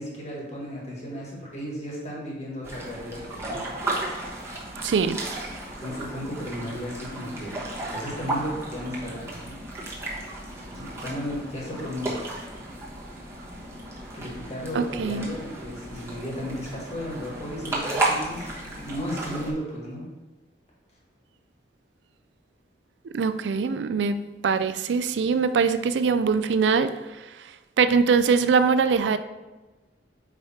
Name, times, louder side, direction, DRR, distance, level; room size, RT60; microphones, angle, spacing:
voice 1, 0.0-3.6 5.8-9.5 10.7-12.2 14.1-20.0, equal, 40° left, -4 dB, 1.7 m, -35 dB
sound 1, 2.6-19.5, right 2 dB, 15° right, 1.1 m, -34 dB
voice 2, 4.8-5.2 14.7-15.3 23.1-26.9 27.8-29.2, right 5 dB, 75° right, 11 dB, 0.4 m, -22 dB
4.8 x 4.7 x 4.2 m, 1.2 s
head